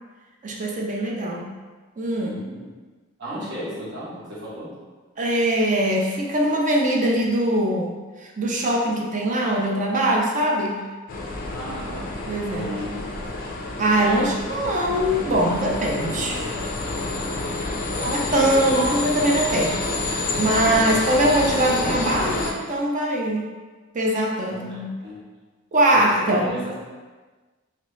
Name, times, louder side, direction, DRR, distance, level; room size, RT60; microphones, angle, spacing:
voice 1, 0.4-1.5 2.0-2.3 5.2-7.9 8.2-10.8 12.3-12.7 13.8-16.4 18.0-19.8 20.1-23.4 23.9-24.9 25.7-26.5, right 1 dB, 40° right, 0 dB, 0.5 m, -22 dB
voice 2, 2.2-2.6 3.2-4.7 11.5-12.1 12.5-13.0 17.1-17.4 17.8-18.9 20.6-21.0 24.5-25.2 25.9-26.7, equal, 60° right, -10 dB, 1.1 m, -35 dB
sound 1, 11.1-22.5, left 2 dB, 45° left, 0.4 m, -28 dB
3.0 x 2.8 x 3.0 m, 1.3 s
head